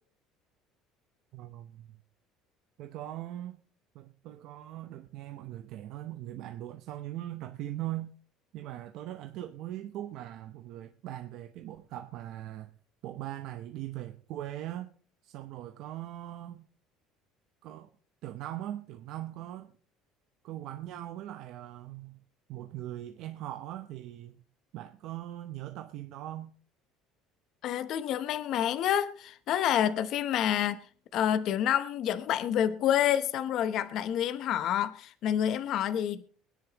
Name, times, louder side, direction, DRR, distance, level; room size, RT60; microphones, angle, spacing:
voice 1, 1.3-2.0 2.8-3.6 3.9-8.1 8.5-12.7 13.0-14.9 15.2-16.6 17.6-17.9 18.2-19.7 20.4-22.2 22.5-24.4 24.7-26.5, right 13 dB, 60° right, 0.8 m, -40 dB
voice 2, 27.6-30.8 31.1-36.2, left 10 dB, 50° left, 0.8 m, -28 dB
23.5 x 10.0 x 3.0 m
cardioid pair, 155°, 0 cm